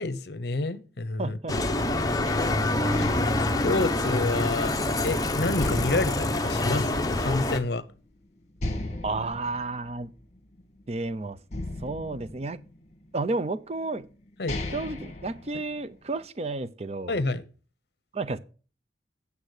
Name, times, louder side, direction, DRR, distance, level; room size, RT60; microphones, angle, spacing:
voice 1, 0.0-1.4 1.8-2.3 3.0-3.1 3.6-4.7 5.0-7.8 14.4-14.6 17.1-17.4, left 2 dB, 60° left, 0.8 m, -29 dB
voice 2, 1.2-1.6 9.0-10.1 10.9-11.4 11.8-12.6 13.1-14.1 14.7-17.2 18.1-18.4, right 3 dB, 35° right, 0.5 m, -31 dB
Bicycle, 1.5-7.6, left 2 dB, 20° left, 0.9 m, -26 dB
sound 1, 2.3-5.1 5.6-7.5 7.9-8.0 8.6-11.0 11.5-13.1 13.8-13.9 14.3-16.1, left 1 dB, 40° left, 1.6 m, -37 dB
8.9 x 7.0 x 4.8 m
head